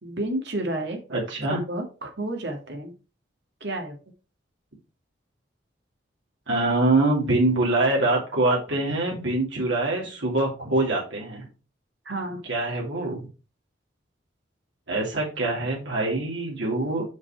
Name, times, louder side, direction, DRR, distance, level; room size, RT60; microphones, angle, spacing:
voice 1, 0.0-1.0 1.5-2.9 3.6-4.0 12.1-12.4, right 1 dB, 65° right, 3 dB, 1.9 m, -30 dB
voice 2, 1.1-1.6 6.5-11.5 12.5-13.2 14.9-17.0, right 2 dB, 85° right, -3 dB, 2.9 m, -24 dB
6.5 x 5.5 x 4.4 m, 0.33 s
head